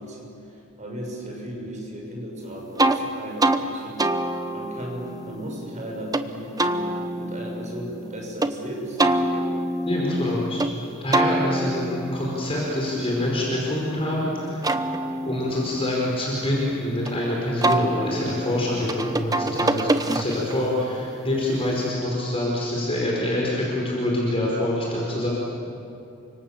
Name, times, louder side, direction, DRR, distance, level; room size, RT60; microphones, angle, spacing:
voice 1, 0.0-4.0 4.5-9.5, equal, 35° right, 0 dB, 6.9 m, -36 dB
sound 1, 2.8-3.0 3.4-3.6 4.0-6.2 6.6-8.5 9.0-10.7 11.1-14.0 14.4-17.1 17.6-20.6, right 1 dB, 15° right, 0.9 m, -26 dB
voice 2, 9.8-10.7 11.0-14.7 15.2-25.3, left 1 dB, 25° left, -4 dB, 5.1 m, -26 dB
30.0 x 26.0 x 7.4 m, 2.7 s
head